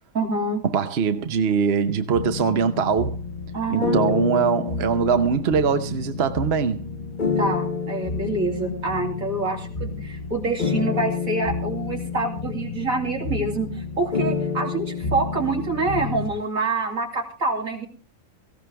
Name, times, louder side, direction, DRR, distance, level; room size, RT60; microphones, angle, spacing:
voice 1, 0.1-0.6 3.5-4.2 7.4-17.9, right 3 dB, 85° right, 3.4 m, -26 dB
voice 2, 0.7-3.2 3.7-6.8, right 6 dB, 50° right, 1.1 m, -22 dB
sound 1, 2.1-16.3, left 5 dB, 40° left, 1.1 m, -29 dB
18.0 x 15.5 x 3.4 m
omnidirectional pair, 1.4 m